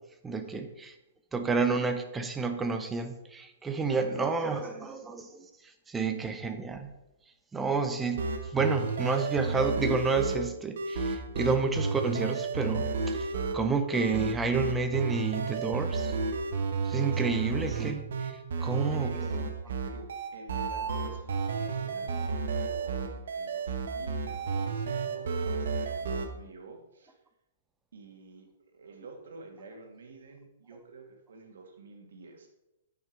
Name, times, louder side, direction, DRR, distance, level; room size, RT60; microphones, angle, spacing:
voice 1, 0.2-0.9 1.3-5.5 5.9-6.9 7.5-13.3 13.5-16.1 16.8-19.1, right 4 dB, 10° right, 7 dB, 0.5 m, -30 dB
voice 2, 3.8-5.1 17.1-17.4 18.6-27.1 27.9-32.5, right 3 dB, 80° right, 3 dB, 2.1 m, -48 dB
sound 1, 8.1-26.3, right 4 dB, 65° right, 1.0 m, -32 dB
8.9 x 5.9 x 4.5 m, 0.93 s
hypercardioid pair, 170°, 0 cm